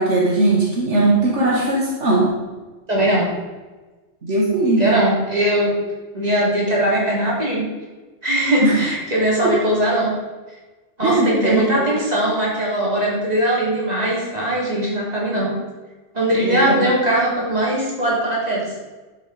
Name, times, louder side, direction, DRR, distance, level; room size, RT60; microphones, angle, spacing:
voice 1, 0.0-2.3 4.2-4.9 8.6-8.8 11.0-11.9 16.4-16.8, right 2 dB, 75° right, -3 dB, 2.1 m, -19 dB
voice 2, 2.9-3.3 4.8-5.7 6.1-7.7 8.2-10.1 11.0-15.5 16.1-18.7, right 1 dB, 35° right, -5 dB, 3.6 m, -20 dB
11.5 x 7.8 x 5.1 m, 1.3 s
omnidirectional pair, 1.2 m